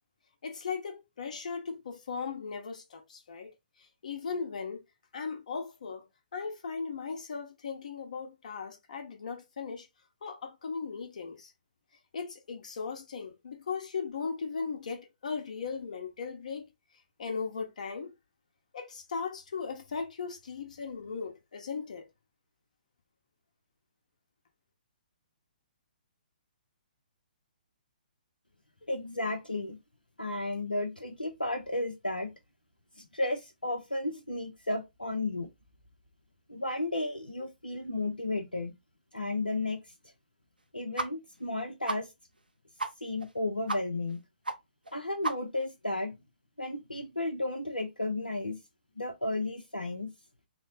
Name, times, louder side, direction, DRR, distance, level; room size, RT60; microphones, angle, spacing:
voice 1, 0.4-3.5 4.0-4.8 5.1-6.0 6.3-9.9 10.2-11.5 12.1-16.7 17.2-18.1 18.7-22.1, left 5 dB, 55° left, 1.1 m, -37 dB
voice 2, 28.9-29.8 30.2-32.3 33.0-35.5 36.5-38.7 39.1-39.8 40.7-42.1 43.0-44.2 44.9-46.2 46.6-48.6 49.0-50.1, left 2 dB, 85° left, 0.7 m, -33 dB
sound 1, 41.0-41.1 41.4-41.5 41.9-42.0 42.4-42.5 42.8-42.9 43.2-43.3 43.7-43.8 44.1-44.2 44.4-44.5 44.8-44.9 45.2-45.6, right 2 dB, 80° right, 0.7 m, -33 dB
4.0 x 2.1 x 4.1 m
figure-of-eight pair, 125°, 5 cm